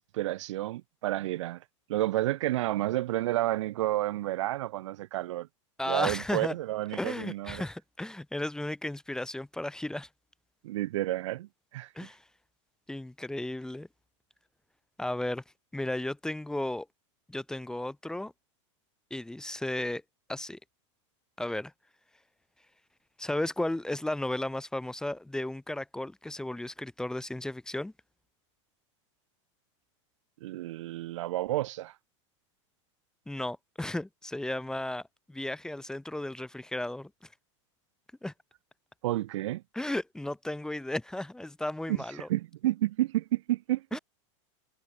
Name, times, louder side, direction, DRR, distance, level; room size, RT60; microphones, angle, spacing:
voice 1, 0.0-1.6 1.9-5.5 5.9-7.6 10.6-11.9 30.4-31.9 39.0-39.6 41.9-42.0 42.3-43.9, right 15 dB, 75° right, 3.8 m, -30 dB
voice 2, 5.8-6.5 6.9-10.1 12.0-12.2 12.9-13.9 15.0-15.4 15.7-16.9 17.3-18.3 19.1-20.0 20.3-20.6 21.4-21.7 23.2-27.9 33.3-35.0 35.3-37.1 38.2-38.3 39.7-42.3 43.9-44.0, left 1 dB, 5° left, 1.9 m, -34 dB
supercardioid pair, 140°, 16 cm